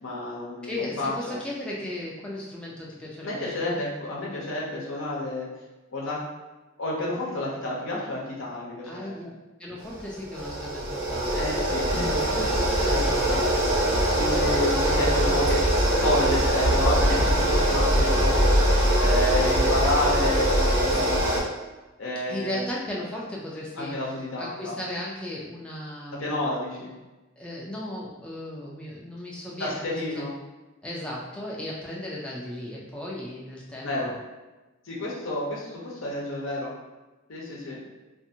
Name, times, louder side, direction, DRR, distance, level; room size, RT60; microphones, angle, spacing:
voice 1, 0.0-1.3 3.2-5.5 5.9-6.2 6.8-9.2 11.3-12.6 12.9-13.5 14.1-15.6 16.0-18.7 19.0-21.4 22.0-22.6 23.8-24.7 26.2-26.9 29.6-30.3 33.8-34.1 34.9-36.7 37.3-37.8, left 1 dB, 70° left, -4 dB, 0.7 m, -30 dB
voice 2, 0.6-3.8 8.8-9.3 9.6-11.5 12.8-13.2 22.3-26.4 27.4-30.2 30.8-34.2, left 1 dB, 5° left, -5 dB, 0.4 m, -36 dB
sound 1, 9.8-21.4, right 1 dB, 90° right, 1.1 m, -22 dB
2.6 x 2.5 x 2.7 m, 1.1 s
head